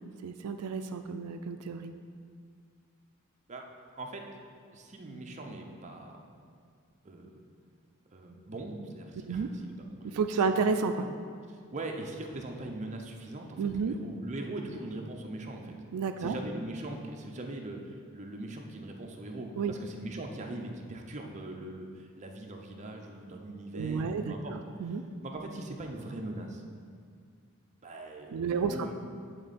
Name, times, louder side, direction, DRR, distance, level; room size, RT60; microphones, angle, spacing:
voice 1, 0.2-1.9 9.3-9.5 10.0-11.0 13.6-13.9 15.9-16.3 19.6-19.7 23.7-25.0 28.3-28.9, right 5 dB, 85° right, 8 dB, 0.4 m, -31 dB
voice 2, 4.7-6.3 7.0-7.3 8.1-10.2 10.5-10.6 11.5-15.7 16.2-24.6 24.8-25.0 25.2-26.6 27.8-28.9, right 2 dB, 35° right, 1 dB, 0.6 m, -41 dB
10.0 x 3.7 x 4.1 m, 2.1 s
head